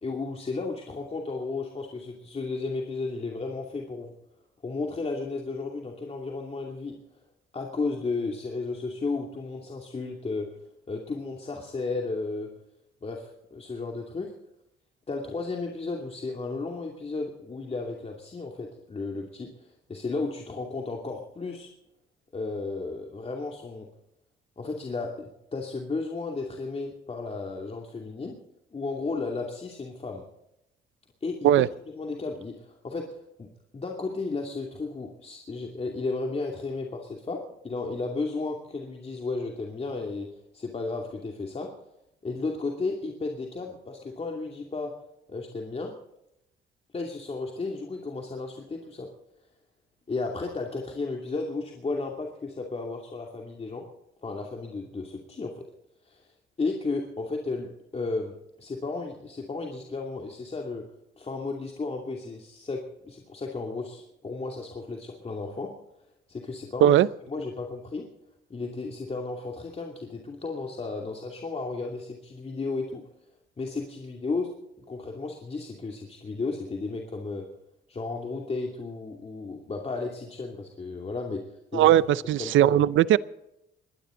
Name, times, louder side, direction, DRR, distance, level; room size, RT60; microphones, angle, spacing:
voice 1, 0.0-4.1 4.6-7.0 7.5-10.5 10.9-12.5 13.0-14.3 15.1-21.7 22.3-23.9 24.6-28.4 28.7-30.2 31.2-40.3 40.5-41.7 42.2-44.9 45.3-45.9 46.9-49.1 50.1-53.8 54.2-55.6 56.0-56.3 56.6-60.8 61.2-65.7 66.3-67.0 67.3-68.0 68.5-73.0 73.6-74.5 74.9-77.5 77.9-81.9 82.4-82.8, left 3 dB, 30° left, 1 dB, 2.7 m, -34 dB
voice 2, 81.7-83.2, right 12 dB, 80° right, 18 dB, 0.6 m, -19 dB
21.5 x 15.5 x 3.9 m, 0.85 s
cardioid pair, 90°, 20 cm